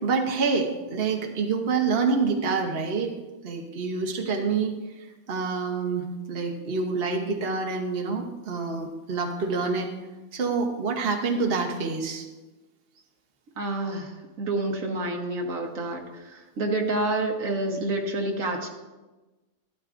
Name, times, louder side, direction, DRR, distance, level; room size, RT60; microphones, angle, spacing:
voice 1, 0.0-3.1 3.4-4.7 5.3-9.9 10.3-12.2, right 4 dB, 50° right, 3 dB, 1.2 m, -27 dB
voice 2, 13.6-18.7, right 2 dB, 80° right, 2 dB, 1.6 m, -28 dB
13.0 x 12.0 x 2.5 m, 1.2 s
omnidirectional pair, 1.4 m